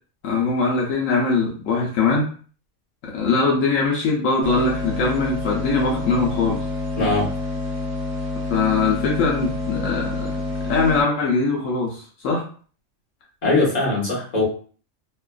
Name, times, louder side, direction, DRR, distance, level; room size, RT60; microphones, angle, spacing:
voice 1, 0.2-2.3 3.0-6.6 8.5-10.3 10.7-12.4, left 4 dB, 80° left, -2 dB, 1.0 m, -21 dB
sound 1, 4.4-11.0, left 3 dB, 35° right, 1.4 m, -28 dB
voice 2, 7.0-7.3 13.4-14.4, left 2 dB, 30° left, -6 dB, 1.2 m, -20 dB
2.8 x 2.3 x 2.3 m, 0.43 s
omnidirectional pair, 1.4 m